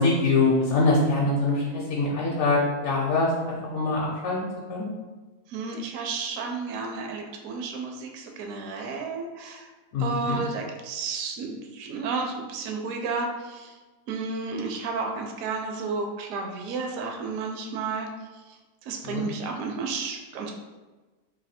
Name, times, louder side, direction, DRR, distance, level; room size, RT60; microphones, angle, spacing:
voice 1, 0.0-4.4 4.7-4.9 9.9-10.4 19.1-19.2, left 3 dB, 65° left, -4 dB, 1.0 m, -24 dB
voice 2, 5.5-9.7 10.0-13.8 14.1-18.1 18.5-18.6 18.8-20.6, right 4 dB, 65° right, 2 dB, 0.9 m, -32 dB
3.1 x 2.7 x 4.2 m, 1.2 s
omnidirectional pair, 1.8 m